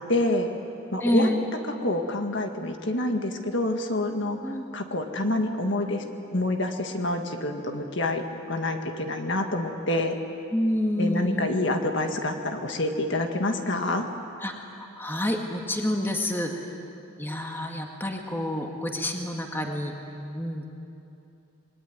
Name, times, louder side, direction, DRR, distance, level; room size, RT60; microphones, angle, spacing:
voice 1, 0.1-0.5 0.9-1.3 1.8-6.0 6.3-10.2 11.0-14.1, left 1 dB, 55° left, 4 dB, 1.8 m, -27 dB
voice 2, 1.0-1.4 4.4-4.7 10.5-11.6 14.4-16.7 17.2-19.9 20.3-20.7, left 1 dB, 10° left, 2 dB, 1.9 m, -28 dB
27.0 x 21.5 x 9.6 m, 2.8 s
head